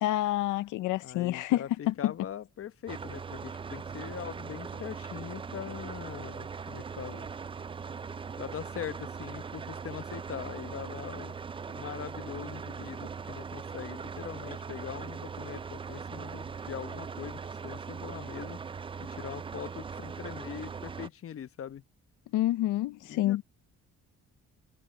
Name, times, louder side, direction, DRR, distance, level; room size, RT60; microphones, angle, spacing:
voice 1, 0.0-2.1 22.3-23.4, left 15 dB, 90° left, 0.7 m, -28 dB
voice 2, 1.0-7.3 8.4-11.4 11.7-18.6 19.0-21.8 23.1-23.4, left 9 dB, 50° left, 0.9 m, -42 dB
sound 1, 2.9-21.1, right 5 dB, 20° right, 0.3 m, -40 dB
cardioid pair, 90°, 30 cm